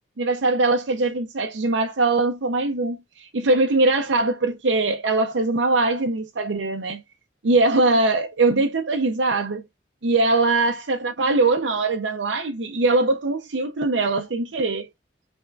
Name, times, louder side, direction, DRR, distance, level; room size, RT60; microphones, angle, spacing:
voice 1, 0.2-7.0 7.4-9.6 10.0-14.9, right 2 dB, 85° right, 0.7 m, -21 dB
5.6 x 3.5 x 2.4 m
head